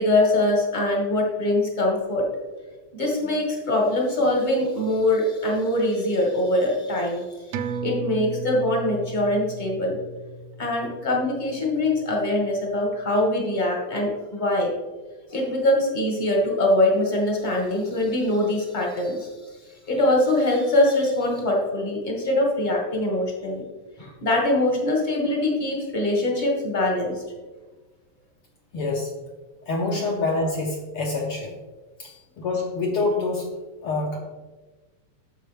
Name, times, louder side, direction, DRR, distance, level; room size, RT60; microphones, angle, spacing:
voice 1, 0.0-2.3 2.9-7.6 7.8-10.0 10.6-14.7 15.3-19.3 19.9-23.6 24.0-27.2 32.0-32.1, left 1 dB, 25° left, -1 dB, 1.0 m, -23 dB
sound 1, 7.5-12.5 12.8-12.9, right 3 dB, 80° right, 1.5 m, -35 dB
voice 2, 28.7-29.1 29.7-31.5 32.0-32.1 32.4-34.2, left 3 dB, 65° left, -1 dB, 1.5 m, -26 dB
10.0 x 6.8 x 3.4 m, 1.3 s
omnidirectional pair, 3.4 m